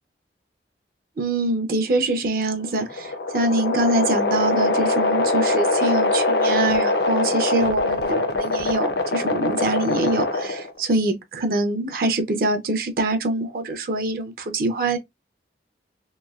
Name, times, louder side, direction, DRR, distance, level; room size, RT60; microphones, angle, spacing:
voice 1, 1.2-15.0, right 2 dB, 55° right, 0.6 m, -24 dB
sound 1, 2.5-10.8, left 2 dB, 75° left, 0.6 m, -23 dB
3.0 x 2.7 x 2.3 m
head